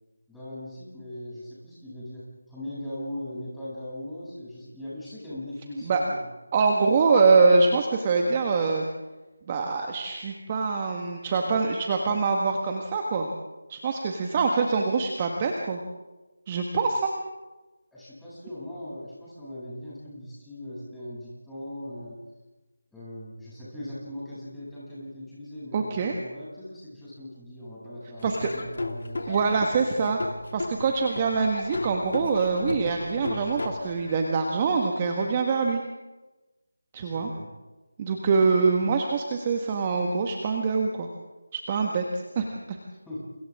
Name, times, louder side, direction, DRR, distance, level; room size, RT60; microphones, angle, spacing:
voice 1, 0.3-6.3 17.9-22.2 22.9-29.6 37.0-37.5 43.1-43.2, left 1 dB, 5° left, -11 dB, 7.9 m, -39 dB
voice 2, 6.5-8.8 9.5-13.3 13.7-15.8 16.5-17.1 25.7-26.1 28.2-28.5 29.3-30.2 30.5-35.8 36.9-37.3 38.0-41.1 41.5-42.8, right 4 dB, 25° right, 2 dB, 1.6 m, -24 dB
Laughter / Drum, 28.2-34.2, left 2 dB, 60° left, 2.5 m, -35 dB
30.0 x 28.5 x 3.7 m, 1.1 s
figure-of-eight pair, 165°, 0 cm